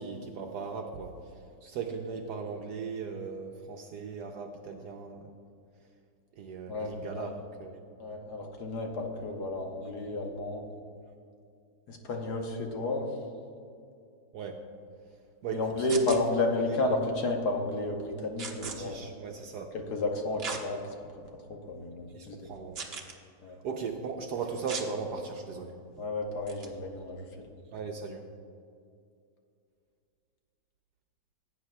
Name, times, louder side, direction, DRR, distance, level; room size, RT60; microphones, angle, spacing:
voice 1, 0.0-5.3 6.4-7.8 14.3-14.6 15.4-16.1 16.6-16.8 18.6-19.7 22.1-22.7 23.6-25.8 27.7-28.2, right 5 dB, 70° right, 3 dB, 1.0 m, -38 dB
voice 2, 6.7-7.2 8.0-10.6 11.9-13.1 15.5-19.0 19.9-20.8 21.5-22.5 23.4-23.6 26.0-27.2, left 2 dB, 60° left, 2 dB, 1.3 m, -31 dB
sound 1, 15.9-16.2 18.4-18.8 20.4-20.6 21.2-21.3 22.7-23.1 24.7-24.9 26.5-26.7, right 5 dB, 50° right, 0.7 m, -37 dB
16.5 x 8.9 x 2.2 m, 2.4 s
omnidirectional pair, 2.2 m